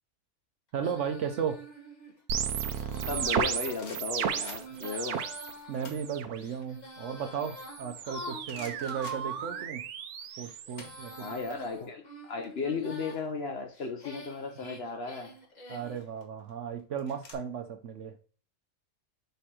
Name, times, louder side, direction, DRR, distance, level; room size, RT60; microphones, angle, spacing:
Female singing, 0.7-9.7 10.2-13.2 13.7-16.0, equal, 30° left, 1.3 m, -47 dB
voice 1, 0.7-1.6 5.7-9.8 10.4-11.3 15.7-18.1, right 7 dB, 60° right, 0.9 m, -35 dB
sound 1, 2.3-5.5 5.8-6.4 7.4-11.5, right 8 dB, 90° right, 1.2 m, -34 dB
voice 2, 3.1-5.2 11.2-15.4, left 4 dB, 50° left, 0.9 m, -35 dB
sound 2, 3.7-4.9 5.6-6.1 6.5-8.1 8.4-9.8 10.1-11.6 11.8-12.0 12.3-13.8 14.8-15.2 15.9-17.3, left 4 dB, 80° left, 1.8 m, -51 dB
6.5 x 3.4 x 4.2 m
omnidirectional pair, 1.5 m